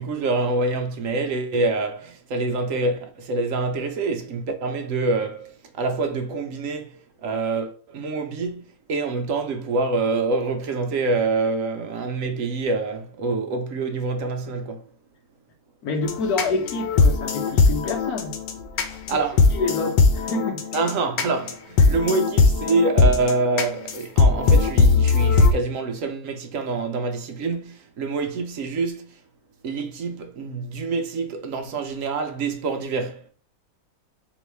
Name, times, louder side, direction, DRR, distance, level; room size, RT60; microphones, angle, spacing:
voice 1, 0.0-14.8 18.9-19.5 20.7-29.2 29.6-33.2, right 3 dB, 65° right, 0.8 m, -26 dB
voice 2, 15.8-18.4 19.5-20.7 21.8-22.1, left 3 dB, 65° left, 1.3 m, -28 dB
sound 1, 16.0-25.5, left 3 dB, 85° left, 1.4 m, -20 dB
3.9 x 3.1 x 3.2 m
omnidirectional pair, 1.9 m